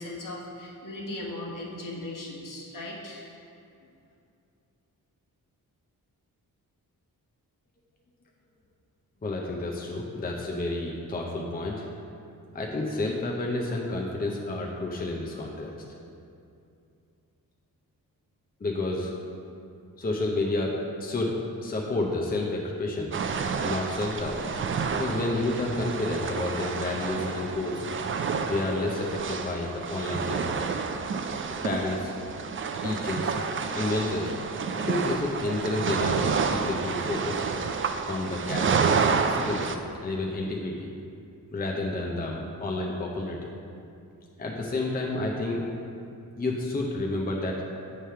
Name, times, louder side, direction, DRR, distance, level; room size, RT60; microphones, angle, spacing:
voice 1, 0.0-3.4, left 1 dB, 60° left, -4 dB, 1.4 m, -38 dB
voice 2, 9.2-11.9 12.5-15.7 18.6-19.1 20.0-23.1 23.6-24.4 24.9-27.9 28.4-30.6 31.6-32.1 32.8-33.4 33.7-34.3 34.7-37.5 38.1-39.0 39.2-39.7 40.0-40.9 41.5-43.5 44.4-45.7 46.4-47.6, left 2 dB, 25° left, -1 dB, 0.6 m, -30 dB
sound 1, 23.1-39.7, right 5 dB, 35° right, 0.4 m, -29 dB
7.4 x 3.3 x 5.6 m, 2.5 s
cardioid pair, 80°, 36 cm